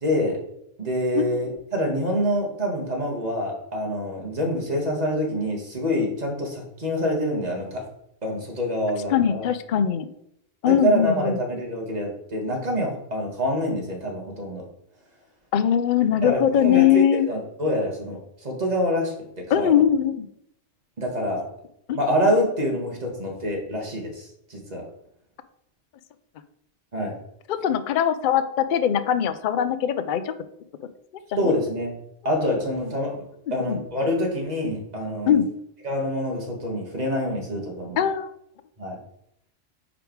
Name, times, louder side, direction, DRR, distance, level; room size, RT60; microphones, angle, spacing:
voice 1, 0.0-0.4 0.8-7.8 8.2-9.4 10.7-14.6 16.2-19.7 21.0-21.5 21.9-24.8 26.9-27.1 31.4-31.9 32.3-33.1 33.5-35.4 35.8-38.0 38.8-39.0, equal, 35° right, 0 dB, 1.7 m, -26 dB
voice 2, 8.9-10.1 10.6-11.4 15.5-17.3 19.5-20.3 21.9-22.0 27.5-30.3 31.3-31.5 33.5-33.8 35.3-35.5 38.0-38.3, left 9 dB, 60° left, 12 dB, 0.5 m, -21 dB
5.1 x 4.9 x 4.6 m, 0.75 s
omnidirectional pair, 1.2 m